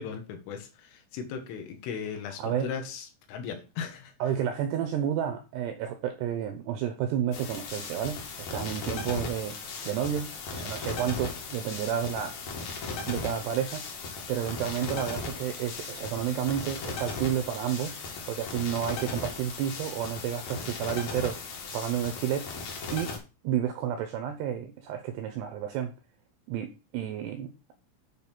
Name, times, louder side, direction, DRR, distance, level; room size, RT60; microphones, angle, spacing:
voice 1, 0.0-4.1, left 6 dB, 80° left, 3.8 m, -37 dB
voice 2, 2.4-2.7 4.2-9.6 9.9-12.4 13.1-13.9 14.3-18.0 18.3-21.4 21.7-22.5 22.9-23.2 23.4-25.9 26.5-27.5, right 9 dB, 90° right, 2.4 m, -31 dB
sound 1, 7.3-23.2, left 4 dB, 55° left, 3.2 m, -37 dB
9.2 x 3.6 x 5.9 m
omnidirectional pair, 5.7 m